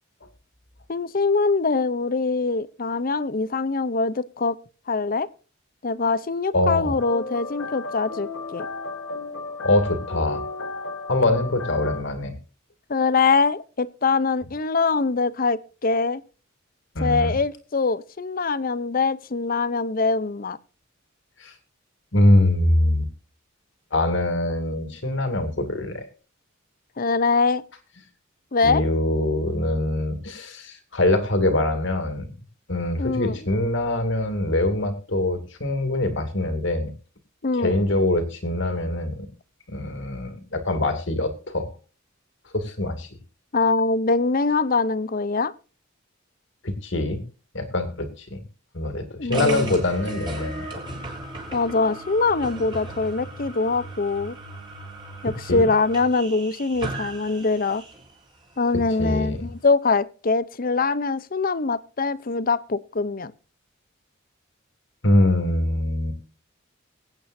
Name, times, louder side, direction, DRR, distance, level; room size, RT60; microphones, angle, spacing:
voice 1, 0.9-4.6 4.9-5.3 5.8-8.7 12.9-16.2 17.0-20.6 27.0-27.6 28.5-28.8 33.0-33.4 37.4-37.8 43.5-45.5 49.2-49.7 51.5-54.3 55.2-57.8 58.6-63.3, left 4 dB, 45° left, 17 dB, 0.6 m, -23 dB
voice 2, 6.5-7.0 9.6-10.4 11.1-12.3 16.9-17.4 21.4-21.5 22.1-23.0 23.9-26.0 28.6-32.3 32.7-36.9 37.6-39.3 39.7-41.7 42.5-43.1 46.6-47.2 47.5-48.4 48.7-50.8 55.5-55.7 59.0-59.5 65.0-66.2, left 1 dB, 60° left, 7 dB, 2.5 m, -23 dB
sound 1, 7.0-12.0, left 3 dB, 75° left, 1.4 m, -34 dB
sound 2, 49.3-58.1, right 2 dB, 25° right, 3.7 m, -36 dB
23.0 x 9.0 x 2.6 m, 0.36 s
head